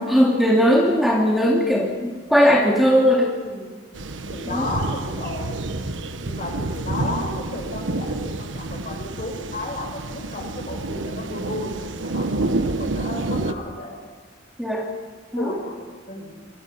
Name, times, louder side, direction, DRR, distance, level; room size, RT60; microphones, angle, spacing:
voice 1, 0.0-3.3 4.5-4.6 14.6-14.8 15.3-15.5, equal, ahead, -2 dB, 2.7 m, -18 dB
voice 2, 3.4-3.8 4.3-5.6 6.2-14.0 15.3-16.4, left 1 dB, 45° left, 0 dB, 7.7 m, -33 dB
sound 1, 3.9-13.5, right 2 dB, 85° right, 1.2 m, -28 dB
28.5 x 22.0 x 5.8 m, 1.4 s
head